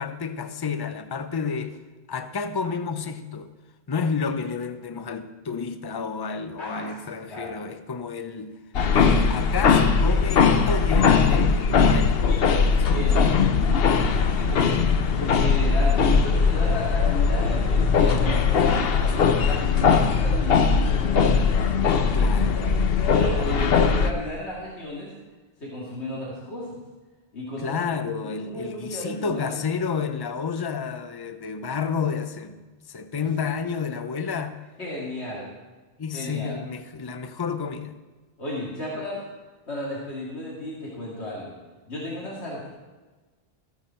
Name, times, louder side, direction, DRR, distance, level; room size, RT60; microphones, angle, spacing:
voice 1, 0.0-1.8 2.1-3.5 3.9-8.6 8.9-13.0 22.1-22.6 27.6-32.6 32.9-34.6 36.0-38.0, left 5 dB, 30° left, 10 dB, 0.5 m, -30 dB
voice 2, 6.6-7.6 12.9-13.4 14.0-14.8 15.2-19.1 19.4-22.6 23.1-25.1 25.6-26.8 27.3-27.9 28.2-29.6 33.2-33.3 34.8-35.5 36.1-36.6 38.4-39.2 39.7-41.5 41.9-42.7, left 1 dB, 90° left, -5 dB, 2.6 m, -34 dB
sound 1, 8.7-24.1, left 5 dB, 65° left, 1.0 m, -20 dB
14.5 x 9.6 x 4.4 m, 1.3 s
omnidirectional pair, 1.1 m